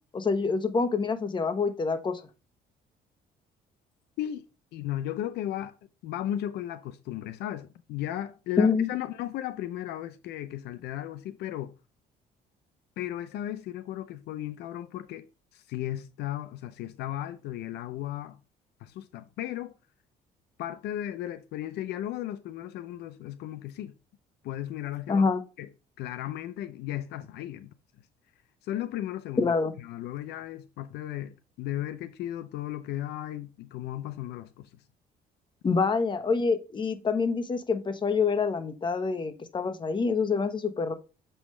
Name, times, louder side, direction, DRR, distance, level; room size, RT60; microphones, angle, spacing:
voice 1, 0.1-2.2 8.6-8.9 25.1-25.4 29.4-29.7 35.6-40.9, left 4 dB, 30° left, 1.0 m, -26 dB
voice 2, 4.7-5.7 6.0-11.7 13.0-15.3 15.5-18.4 18.8-19.7 20.6-23.9 24.4-25.3 25.6-25.7 26.0-27.7 28.6-29.5 29.8-34.7, left 12 dB, 80° left, 0.6 m, -35 dB
7.1 x 5.7 x 3.2 m
cardioid pair, 110°, 17 cm